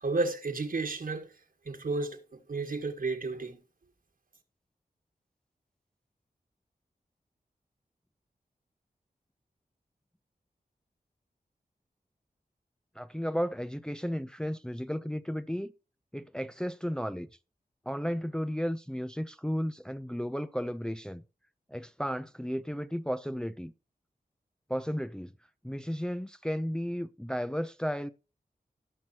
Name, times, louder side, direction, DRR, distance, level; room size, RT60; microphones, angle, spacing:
voice 1, 0.0-1.3 1.7-3.6, right 3 dB, 65° right, 1.9 m, -32 dB
voice 2, 13.0-15.7 16.1-17.3 17.9-21.2 21.7-23.7 24.7-25.3 25.6-28.1, equal, 5° left, 0.6 m, -34 dB
18.0 x 6.0 x 2.9 m
cardioid pair, 55°, 16 cm